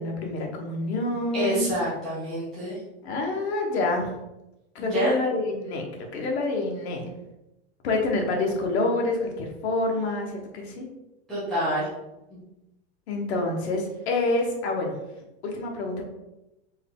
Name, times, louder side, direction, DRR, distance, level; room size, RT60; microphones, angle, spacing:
voice 1, 0.0-1.7 3.0-4.1 4.7-5.9 6.1-7.1 7.8-10.9 13.1-15.0 15.4-16.1, left 2 dB, 75° left, 1 dB, 1.2 m, -27 dB
voice 2, 1.3-2.8 4.8-5.1 11.3-11.9 12.3-12.4, right 1 dB, ahead, -14 dB, 0.3 m, -27 dB
4.6 x 2.7 x 3.6 m, 0.94 s
supercardioid pair, 180°, 33 cm